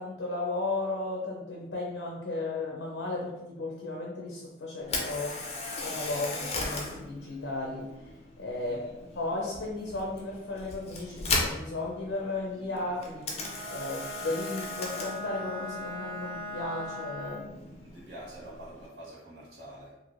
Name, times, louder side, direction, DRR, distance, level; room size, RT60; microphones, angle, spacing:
voice 1, 0.0-5.4 5.8-8.9 9.1-13.4 13.7-17.9, left 2 dB, 85° left, -2 dB, 0.5 m, -35 dB
Camera, 4.8-18.9, left 3 dB, 35° left, 0.5 m, -38 dB
voice 2, 8.6-8.9 17.8-20.0, right 1 dB, 70° right, -7 dB, 1.3 m, -46 dB
Bowed string instrument, 13.3-17.6, left 1 dB, 40° right, 0.4 m, -39 dB
3.1 x 2.6 x 2.5 m, 1.0 s
head